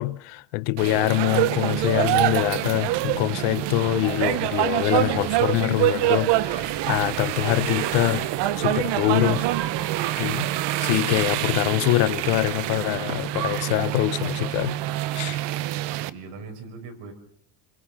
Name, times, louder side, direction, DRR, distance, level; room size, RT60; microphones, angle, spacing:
voice 1, 0.0-8.3 8.6-9.5 10.2-10.5 10.8-14.8 15.1-15.4, left 20 dB, 85° left, 1.0 m, -24 dB
sound 1, 0.8-16.1, right 15 dB, 55° right, 0.9 m, -25 dB
sound 2, 1.7-15.4, left 2 dB, 10° left, 2.1 m, -49 dB
voice 2, 16.1-17.1, right 4 dB, 80° right, 5.3 m, -41 dB
27.5 x 23.5 x 6.0 m
cardioid pair, 165°, 50 cm